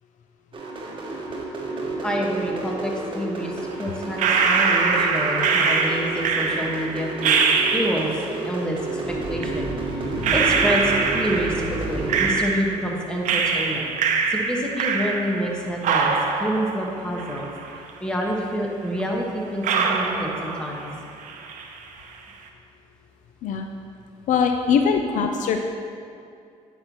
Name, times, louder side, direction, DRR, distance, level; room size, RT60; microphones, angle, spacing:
sound 1, 0.5-12.3, right 3 dB, 40° right, 1.4 m, -30 dB
voice 1, 2.0-17.5 18.0-20.9 24.8-25.2, equal, 5° left, -1 dB, 1.4 m, -28 dB
sound 2, 4.2-8.3 9.4-9.5 10.2-12.9 13.3-15.5 15.8-17.9 18.2-18.3 19.0-19.1 19.6-21.0 21.2-21.8, right 5 dB, 70° right, 0.7 m, -23 dB
voice 2, 24.3-25.6, left 6 dB, 70° left, 4 dB, 0.5 m, -21 dB
9.6 x 5.8 x 3.0 m, 2.4 s
supercardioid pair, 65°, 14 cm